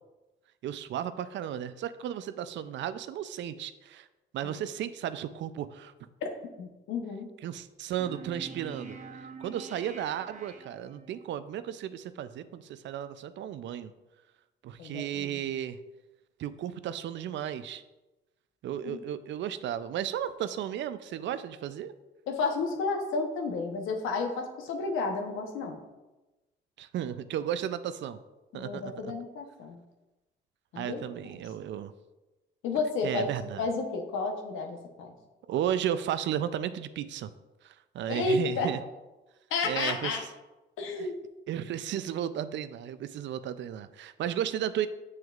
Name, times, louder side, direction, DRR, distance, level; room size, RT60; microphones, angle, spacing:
voice 1, 0.6-4.1 4.3-5.9 7.4-9.0 9.4-13.9 14.6-15.8 16.4-17.8 18.6-21.9 26.8-28.2 28.5-29.1 30.8-31.9 33.0-33.6 35.5-37.3 37.6-38.8 39.6-40.2 41.5-44.9, right 10 dB, 70° right, 13 dB, 0.4 m, -34 dB
voice 2, 6.6-7.3 14.8-15.3 18.8-19.0 22.3-25.8 28.5-29.8 30.7-31.0 31.3-31.4 32.6-33.3 33.6-35.1 38.1-38.7 39.5-40.2 40.8-41.1, left 4 dB, 85° left, 3 dB, 0.9 m, -31 dB
sound 1, 8.0-11.3, right 4 dB, 40° right, 0.8 m, -45 dB
7.0 x 6.3 x 2.4 m, 1.1 s
cardioid pair, 90°, 20 cm